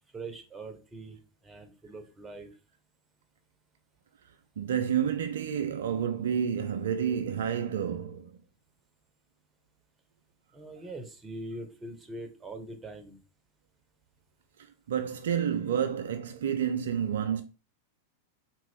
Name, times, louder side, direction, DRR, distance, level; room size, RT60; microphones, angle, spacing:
voice 1, 0.1-2.5 10.5-13.2, right 2 dB, 15° right, 0.8 m, -42 dB
voice 2, 4.6-8.3 14.9-17.4, right 8 dB, 60° right, 0.3 m, -29 dB
3.7 x 2.5 x 3.4 m
figure-of-eight pair, 90°, 0 cm